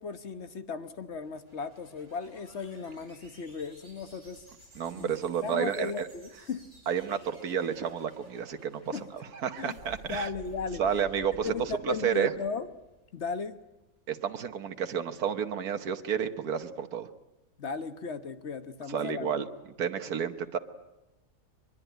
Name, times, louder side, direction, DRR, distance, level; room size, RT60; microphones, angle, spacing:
voice 1, 0.0-4.4 5.0-6.6 8.9-9.0 9.6-9.8 10.0-10.8 11.4-12.7 13.1-13.6 17.6-19.3, left 5 dB, 50° left, 10 dB, 1.4 m, -36 dB
sound 1, 1.0-13.4, right 2 dB, 70° right, 4.9 m, -54 dB
voice 2, 4.7-6.1 6.9-10.3 10.8-12.3 14.1-17.1 18.9-19.5 19.8-20.6, right 8 dB, 90° right, 8 dB, 1.6 m, -31 dB
23.0 x 22.5 x 9.1 m, 0.98 s
omnidirectional pair, 1.6 m